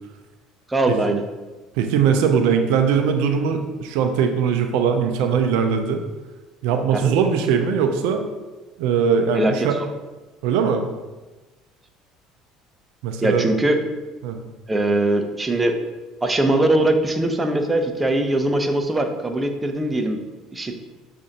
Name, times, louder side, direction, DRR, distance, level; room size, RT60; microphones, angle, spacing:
voice 1, 0.7-1.2 6.9-7.1 9.3-9.7 13.2-13.8 14.7-15.7 16.2-20.2 20.5-20.7, right 1 dB, 15° right, 5 dB, 0.5 m, -21 dB
voice 2, 1.7-6.0 6.6-8.2 8.8-9.8 10.4-10.8 13.0-13.4 14.2-14.4, right 6 dB, 75° right, 5 dB, 0.4 m, -20 dB
6.3 x 2.5 x 2.8 m, 1.2 s
supercardioid pair, 80°, 0 cm